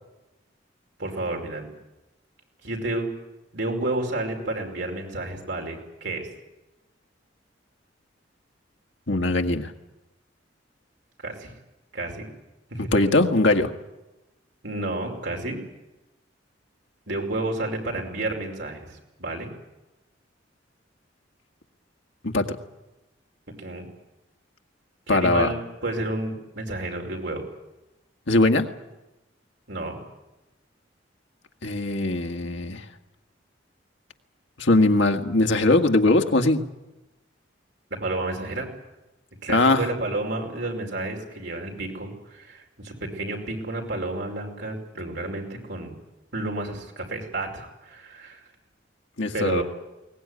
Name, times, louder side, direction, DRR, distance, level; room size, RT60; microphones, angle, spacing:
voice 1, 1.0-1.7 2.6-3.1 3.5-6.3 11.2-11.5 11.9-12.3 12.7-12.9 14.6-15.6 17.1-19.5 23.6-23.9 25.1-27.4 29.7-30.0 37.9-38.7 39.4-45.9 46.3-48.4 49.3-49.6, right 2 dB, 65° right, 1 dB, 5.2 m, -31 dB
voice 2, 9.1-9.7 12.9-13.7 22.2-22.5 25.1-25.5 28.3-28.7 31.6-32.8 34.6-36.6 39.5-39.8 49.2-49.6, left 2 dB, 75° left, 4 dB, 1.8 m, -20 dB
22.0 x 19.0 x 9.7 m, 1.0 s
head